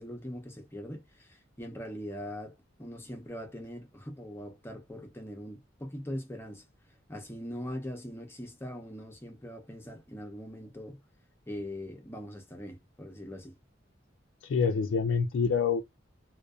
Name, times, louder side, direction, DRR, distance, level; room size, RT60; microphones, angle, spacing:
voice 1, 0.0-6.6 7.1-11.0 11.5-13.6, equal, 10° left, 0.5 m, -41 dB
voice 2, 14.4-15.8, left 5 dB, 70° left, 0.3 m, -26 dB
2.5 x 2.2 x 2.3 m
head